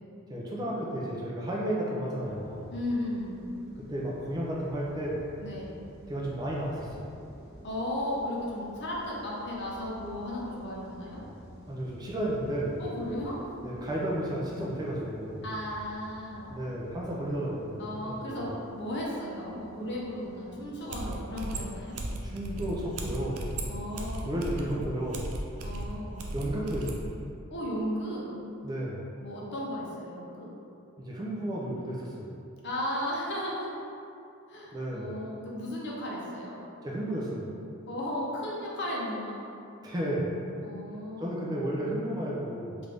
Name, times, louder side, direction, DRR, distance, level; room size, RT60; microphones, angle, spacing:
voice 1, 0.3-2.7 3.8-5.2 6.1-7.1 11.7-12.8 13.6-15.4 16.5-18.5 22.2-23.4 24.2-25.3 26.3-27.1 28.6-29.0 31.0-32.3 34.7-35.1 36.8-37.5 39.8-40.3 41.2-42.8, right 1 dB, 20° right, -5 dB, 0.4 m, -33 dB
sound 1, 2.2-21.4, equal, 10° left, 1.0 m, -51 dB
voice 2, 2.7-3.4 5.4-5.8 7.6-11.2 12.8-13.5 15.4-16.6 17.8-21.9 23.6-24.4 25.6-26.2 27.5-28.3 29.2-30.5 32.6-33.7 34.5-36.6 37.9-39.4 40.6-41.5, left 1 dB, 50° left, -4 dB, 0.6 m, -35 dB
sound 2, 20.9-27.0, right 1 dB, 75° right, 0.4 m, -36 dB
3.4 x 2.5 x 3.2 m, 2.6 s
head